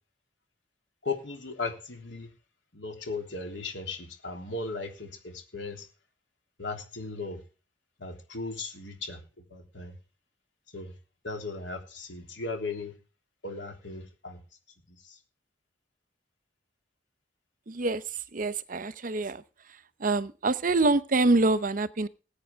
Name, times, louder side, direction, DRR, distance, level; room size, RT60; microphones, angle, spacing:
voice 1, 1.0-2.3 2.7-5.9 6.6-7.4 8.0-9.2 9.5-9.9 10.7-10.9 11.2-12.9 13.4-14.4 15.1-15.2, left 3 dB, 85° left, 4 dB, 3.3 m, -37 dB
voice 2, 17.7-18.0 18.3-19.4 20.0-22.1, right 2 dB, 50° right, 15 dB, 0.8 m, -25 dB
20.5 x 8.7 x 3.6 m, 0.34 s
head